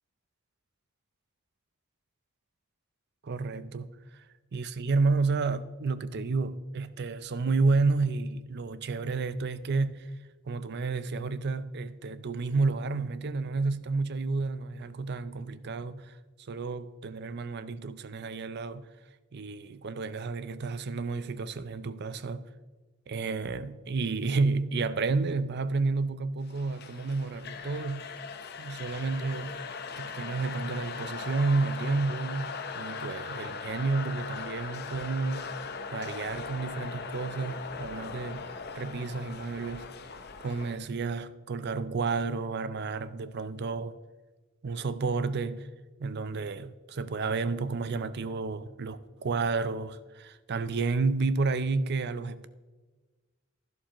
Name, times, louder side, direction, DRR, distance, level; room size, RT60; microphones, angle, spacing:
voice 1, 3.2-4.0 4.5-10.1 10.5-16.2 16.5-18.9 19.3-22.5 23.1-28.1 28.6-29.6 30.0-35.5 35.9-39.9 40.4-44.0 44.6-45.7 46.0-52.5, right 3 dB, 55° right, 0.5 m, -31 dB
sound 1, 26.5-40.7, left 5 dB, 50° left, 0.8 m, -39 dB
11.5 x 11.0 x 3.0 m
head